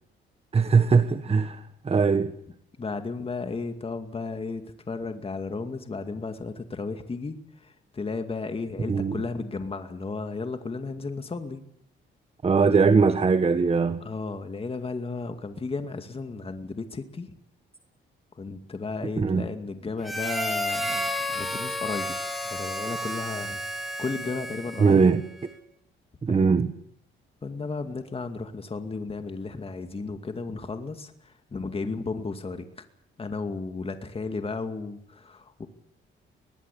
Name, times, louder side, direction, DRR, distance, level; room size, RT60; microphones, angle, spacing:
voice 1, 0.5-2.3 8.9-9.2 12.4-14.0 19.2-19.4 24.8-25.5 26.2-26.7, right 5 dB, 30° right, 1.5 m, -21 dB
voice 2, 2.8-11.6 14.0-17.3 18.4-22.2 22.4-25.0 26.3-26.7 27.4-32.8 33.2-35.7, left 4 dB, 30° left, 2.3 m, -34 dB
Harmonica, 20.0-25.0, left 1 dB, ahead, 5.4 m, -31 dB
23.5 x 19.5 x 8.5 m
cardioid pair, 90°, 20 cm